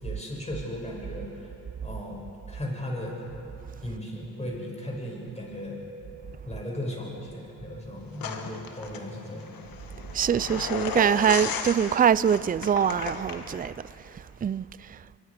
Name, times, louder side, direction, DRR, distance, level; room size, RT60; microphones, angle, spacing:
voice 1, 0.0-1.5 1.8-3.2 3.8-5.9 6.5-9.5, left 1 dB, 20° left, 6.9 m, -36 dB
sound 1, 8.2-13.7, left 6 dB, 70° left, 1.7 m, -35 dB
voice 2, 10.1-13.7 14.1-15.0, right 8 dB, 25° right, 0.4 m, -24 dB
25.0 x 22.5 x 5.1 m
supercardioid pair, 65°, 36 cm